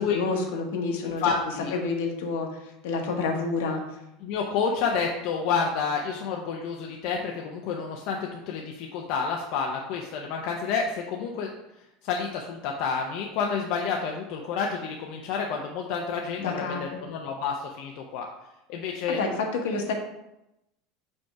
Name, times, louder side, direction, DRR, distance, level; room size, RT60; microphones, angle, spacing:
voice 1, 0.0-1.3 1.7-3.8 16.4-17.0 19.1-19.9, left 4 dB, 80° left, 2 dB, 1.3 m, -29 dB
voice 2, 1.2-1.7 4.2-11.5 12.0-18.3 18.7-19.2, left 5 dB, 45° left, 1 dB, 0.6 m, -29 dB
5.2 x 3.5 x 5.6 m, 0.88 s
supercardioid pair, 180°, 0 cm